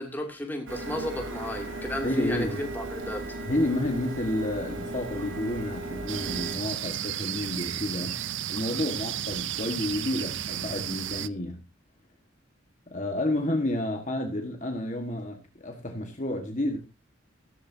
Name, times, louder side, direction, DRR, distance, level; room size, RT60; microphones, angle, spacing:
voice 1, 0.0-3.2, left 1 dB, 10° left, 2.7 m, -33 dB
Printer, 0.7-6.5, right 2 dB, 80° right, 3.8 m, -36 dB
voice 2, 2.0-2.6 3.5-8.2 8.5-11.6 12.9-16.8, left 1 dB, 40° left, 1.6 m, -30 dB
sound 1, 6.1-11.3, right 11 dB, 65° right, 0.5 m, -33 dB
14.5 x 13.5 x 2.8 m
head